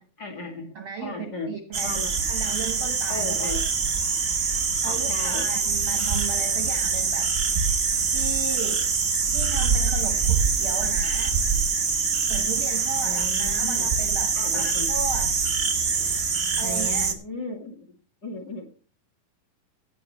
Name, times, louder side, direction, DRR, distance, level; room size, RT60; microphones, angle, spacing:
voice 1, 0.2-1.5 1.8-2.1 3.1-3.7 4.9-5.5 13.0-13.9 14.3-14.9 16.6-18.7, left 2 dB, 35° left, 1 dB, 2.2 m, -36 dB
voice 2, 0.7-2.0 2.3-3.5 4.8-7.3 8.1-8.8 9.3-11.4 12.3-15.3 16.6-17.1, right 5 dB, 55° right, 5 dB, 1.5 m, -35 dB
sound 1, 1.7-17.1, right 5 dB, 85° right, 0.6 m, -24 dB
17.5 x 8.7 x 3.1 m, 0.39 s
omnidirectional pair, 3.8 m